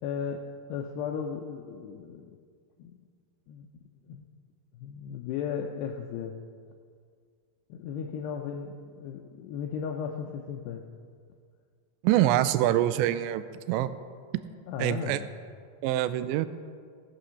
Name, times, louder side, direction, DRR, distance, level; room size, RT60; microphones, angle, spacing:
voice 1, 0.0-0.4 0.7-2.3 2.8-3.0 3.5-3.7 4.1-4.3 4.7-6.4 7.7-10.8 14.7-15.3, left 7 dB, 80° left, 2 dB, 2.4 m, -35 dB
voice 2, 12.0-13.9 14.8-15.2 15.8-16.5, right 13 dB, 85° right, 12 dB, 2.6 m, -25 dB
17.5 x 8.7 x 6.4 m, 2.1 s
omnidirectional pair, 5.5 m